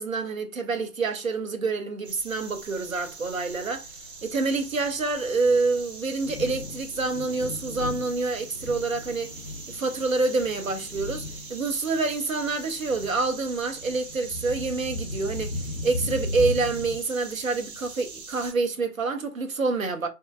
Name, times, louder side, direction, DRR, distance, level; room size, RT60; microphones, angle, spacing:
voice 1, 0.0-3.8 4.2-9.4 9.7-11.2 11.5-20.1, right 3 dB, 60° right, 0.7 m, -27 dB
sound 1, 2.0-18.5, right 3 dB, 85° right, 1.1 m, -43 dB
Thunder, 3.3-17.0, left 2 dB, 50° left, 0.5 m, -37 dB
3.1 x 2.2 x 2.2 m
hypercardioid pair, 175°, 47 cm